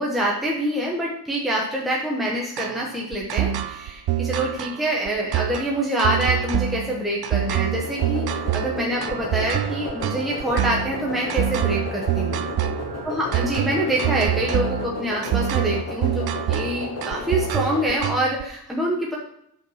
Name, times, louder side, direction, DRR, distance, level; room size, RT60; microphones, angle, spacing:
voice 1, 0.0-12.4 13.0-19.2, right 1 dB, ahead, -4 dB, 1.2 m, -26 dB
sound 1, 2.6-18.4, right 11 dB, 85° right, 0.7 m, -26 dB
sound 2, 7.7-18.0, left 4 dB, 45° left, 1.3 m, -34 dB
sound 3, 8.9-14.9, right 2 dB, 25° right, 2.5 m, -41 dB
8.7 x 5.4 x 5.8 m, 0.75 s
wide cardioid pair, 155°, 37 cm